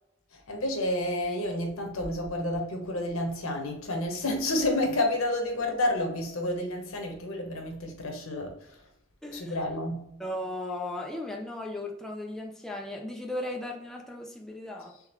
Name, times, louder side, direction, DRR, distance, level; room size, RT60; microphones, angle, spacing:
voice 1, 0.3-8.8 9.3-10.1, left 1 dB, 90° left, 3 dB, 1.0 m, -30 dB
voice 2, 9.2-9.5 10.2-14.9, left 1 dB, ahead, 0 dB, 0.5 m, -36 dB
3.8 x 3.4 x 3.0 m, 0.80 s
head